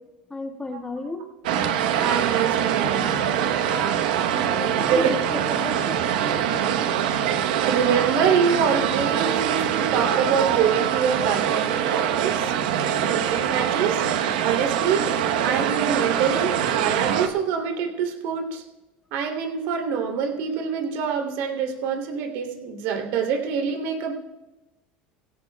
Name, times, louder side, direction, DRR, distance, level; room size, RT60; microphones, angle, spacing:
voice 1, 0.3-1.3 4.3-6.1, left 2 dB, 15° left, 4 dB, 1.5 m, -33 dB
sound 1, 1.4-17.3, right 9 dB, 90° right, 1.0 m, -24 dB
voice 2, 2.0-3.3 4.8-5.1 7.6-12.5 12.8-14.0 14.4-15.1 15.4-18.6 19.1-24.1, right 6 dB, 70° right, 2 dB, 3.0 m, -25 dB
19.0 x 16.5 x 2.3 m, 1.0 s
supercardioid pair, 115°, 4 cm